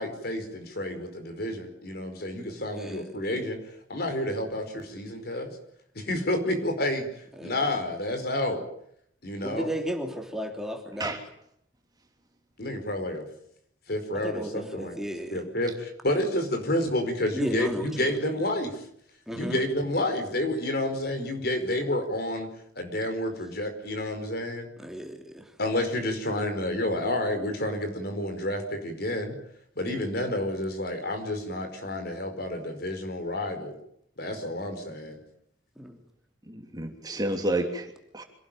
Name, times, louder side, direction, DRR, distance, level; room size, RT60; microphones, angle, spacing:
voice 1, 0.0-5.5 5.9-8.6 9.2-9.7 12.6-13.3 13.9-15.0 15.3-18.8 19.3-22.5 22.7-24.7 25.6-29.4 29.8-33.7 34.2-35.2, left 1 dB, 55° left, 7 dB, 5.0 m, -30 dB
voice 2, 2.7-3.1 7.4-7.6 9.4-11.1 14.2-15.4 17.3-17.9 19.3-19.6 24.8-25.5 35.8-36.0, equal, ahead, 2 dB, 3.0 m, -34 dB
voice 3, 36.5-38.2, right 1 dB, 20° right, 4 dB, 3.1 m, -30 dB
26.5 x 18.5 x 9.1 m, 0.71 s
head